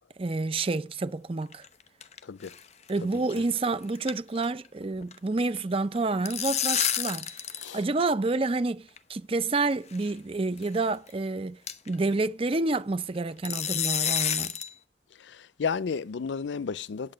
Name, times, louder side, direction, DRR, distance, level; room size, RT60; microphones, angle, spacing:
voice 1, 0.2-1.6 2.9-7.3 7.7-11.6 11.9-14.5, right 3 dB, 30° right, 0.5 m, -28 dB
sound 1, 1.4-2.2 2.4-2.6 2.9-3.0 3.4-3.6 3.8-4.7 4.9-5.1 6.0-7.7 8.0-8.1 9.0-9.1 9.9-10.1 10.6-10.7 11.1-11.2 11.7-11.9 13.4-14.7, left 9 dB, 35° left, 0.8 m, -29 dB
voice 2, 2.2-2.5 3.0-3.2 7.6-7.8 15.2-17.1, left 5 dB, 85° left, 0.5 m, -33 dB
8.8 x 8.4 x 6.3 m
head